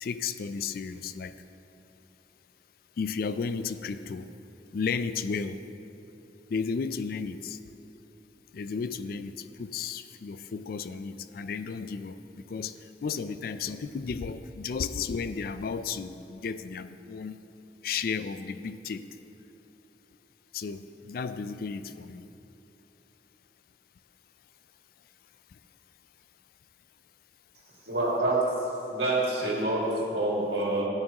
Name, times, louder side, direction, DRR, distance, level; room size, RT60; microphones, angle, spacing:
voice 1, 0.0-1.3 3.0-4.3 4.7-5.6 6.5-7.6 8.5-12.7 13.0-17.4 17.8-19.0 20.5-22.3, left 5 dB, 50° left, 12 dB, 0.3 m, -33 dB
voice 2, 27.8-28.4 28.9-30.9, right 2 dB, 65° right, -4 dB, 2.1 m, -27 dB
13.0 x 8.8 x 2.9 m, 2.9 s
head